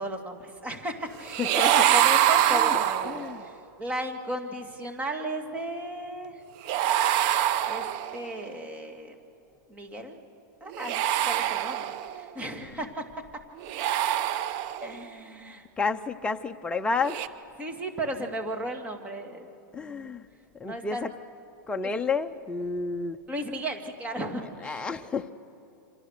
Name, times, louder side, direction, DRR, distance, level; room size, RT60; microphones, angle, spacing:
voice 1, 0.0-3.3 3.8-6.4 7.7-7.9 8.1-9.2 9.7-10.2 10.6-13.0 14.8-15.6 17.6-19.5 19.8-20.1 20.7-21.0 23.3-24.8, right 1 dB, 15° right, 3 dB, 2.4 m, -35 dB
sound 1, 1.3-3.4 6.7-8.3 10.7-12.3 13.6-15.0 17.0-17.3, right 12 dB, 45° right, 1.0 m, -25 dB
voice 2, 1.4-1.9 2.5-2.8 3.0-3.4 12.6-12.7 15.8-17.2 19.7-20.3 20.6-21.1 21.7-23.2 24.6-25.3, left 4 dB, 10° left, 6 dB, 0.7 m, -30 dB
28.5 x 26.0 x 6.7 m, 2.7 s
hypercardioid pair, 130°, 11 cm